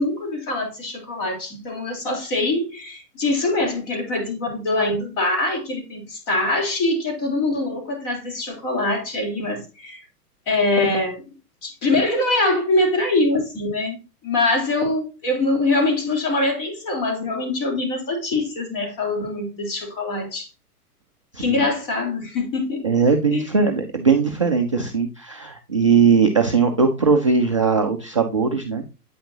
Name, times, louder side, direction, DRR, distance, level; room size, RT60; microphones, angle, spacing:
voice 1, 0.0-10.0 10.5-11.2 11.6-14.0 14.2-20.5 21.4-22.9 23.3-23.4, left 2 dB, 35° left, 3.6 m, -23 dB
voice 2, 21.3-21.6 22.8-28.8, right 5 dB, 25° right, 0.3 m, -19 dB
8.7 x 5.7 x 2.7 m
figure-of-eight pair, 115°, 47 cm